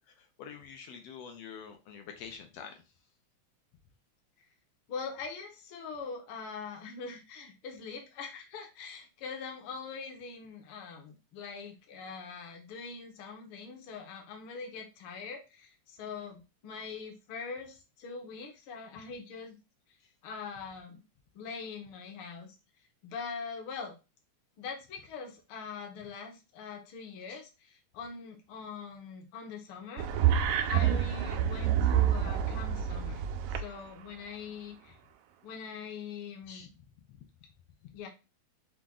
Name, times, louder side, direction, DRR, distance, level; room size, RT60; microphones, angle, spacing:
voice 1, 0.1-2.8 27.3-27.4 36.5-36.7 37.1-37.2 37.8-37.9, left 7 dB, 75° left, 5 dB, 1.6 m, -47 dB
voice 2, 4.9-19.6 20.2-21.0 21.3-22.5 23.0-23.9 24.6-30.3 30.7-33.2 33.5-35.0 35.4-36.7 37.9-38.1, left 5 dB, 60° left, 2 dB, 1.5 m, -43 dB
sound 1, 30.0-33.6, right 9 dB, 90° right, 1.3 m, -27 dB
5.9 x 2.5 x 3.6 m, 0.29 s
omnidirectional pair, 3.3 m